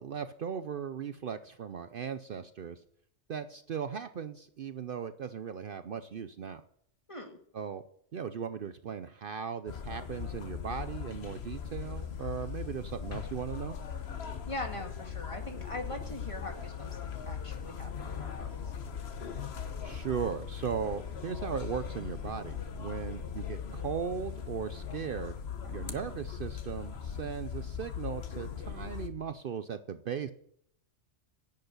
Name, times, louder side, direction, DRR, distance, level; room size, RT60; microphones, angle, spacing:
voice 1, 0.0-2.8 3.3-6.6 7.5-7.8 8.1-13.8 19.8-25.3 25.7-30.3, right 7 dB, 55° right, 11 dB, 0.7 m, -37 dB
sound 1, 9.7-29.1, left 7 dB, 65° left, 1.2 m, -39 dB
voice 2, 14.2-18.7 25.6-25.9, left 1 dB, 25° left, 3 dB, 2.0 m, -42 dB
10.5 x 7.9 x 8.1 m, 0.68 s
omnidirectional pair, 1.2 m